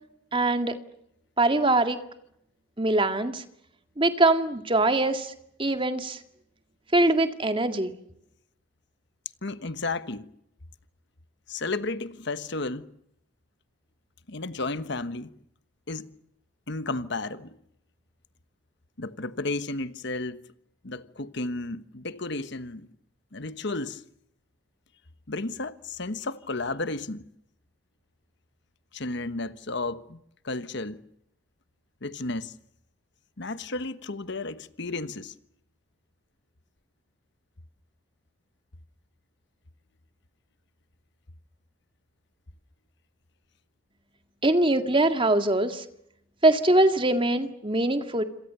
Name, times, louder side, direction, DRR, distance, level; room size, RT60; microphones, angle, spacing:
voice 1, 0.3-0.8 1.4-2.0 2.8-3.4 4.0-5.3 5.6-6.2 6.9-7.9 44.4-45.8 46.4-48.2, right 2 dB, 25° right, 1.9 m, -22 dB
voice 2, 9.4-10.3 11.5-12.9 14.3-15.3 15.9-16.1 16.7-17.6 19.0-20.4 20.8-22.9 23.3-24.0 25.3-27.3 28.9-30.2 30.4-31.0 32.0-32.5 33.4-35.3, left 2 dB, 55° left, 1.2 m, -33 dB
27.5 x 27.5 x 6.9 m
head